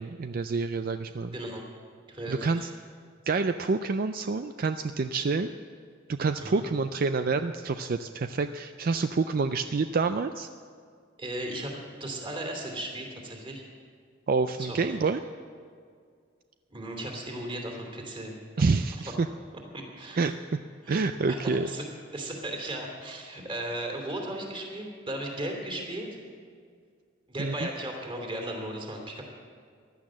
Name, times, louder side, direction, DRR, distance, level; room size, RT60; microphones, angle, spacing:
voice 1, 0.0-1.3 2.3-2.7 3.3-5.5 6.1-10.5 14.3-15.2 18.6-19.3 20.2-20.3 20.9-21.7 27.4-27.7, right 4 dB, 50° right, 9 dB, 0.4 m, -27 dB
voice 2, 2.1-2.7 6.4-6.6 11.2-11.7 12.0-13.6 14.6-15.0 16.7-19.1 19.7-20.3 20.8-21.8 22.1-26.1 27.3-29.2, right 1 dB, 25° right, 1 dB, 2.8 m, -36 dB
15.0 x 11.5 x 7.5 m, 2.1 s
head